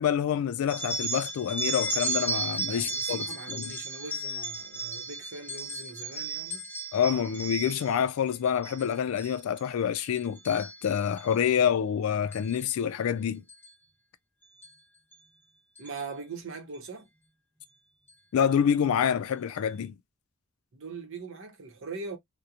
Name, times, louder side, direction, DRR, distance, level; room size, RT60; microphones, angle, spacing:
voice 1, 0.0-3.7 6.9-13.4 18.3-19.9, left 8 dB, 70° left, 0.3 m, -27 dB
sound 1, 0.7-8.0 8.5-8.9 9.2-9.6 10.0-11.4 12.3-12.6 13.5-13.7 14.6-14.7 15.1-15.2 15.8-16.0, right 3 dB, 10° left, 0.7 m, -34 dB
voice 2, 2.7-6.6 15.8-17.1 20.7-22.2, right 4 dB, 65° right, 0.8 m, -41 dB
2.8 x 2.1 x 2.3 m
head